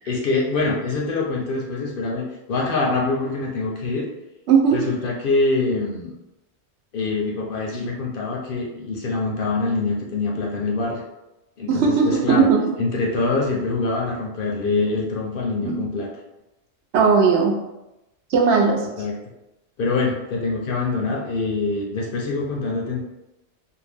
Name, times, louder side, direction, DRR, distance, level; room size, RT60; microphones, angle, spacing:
voice 1, 0.1-4.1 4.7-6.1 6.9-11.0 11.6-12.5 12.8-16.1 19.0-19.1 19.8-23.0, left 3 dB, 60° left, -2 dB, 0.7 m, -24 dB
voice 2, 4.5-4.8 11.7-12.6 15.6-15.8 16.9-17.6 18.3-18.9, right 5 dB, 80° right, 1 dB, 0.9 m, -17 dB
2.7 x 2.1 x 3.3 m, 0.96 s
omnidirectional pair, 1.1 m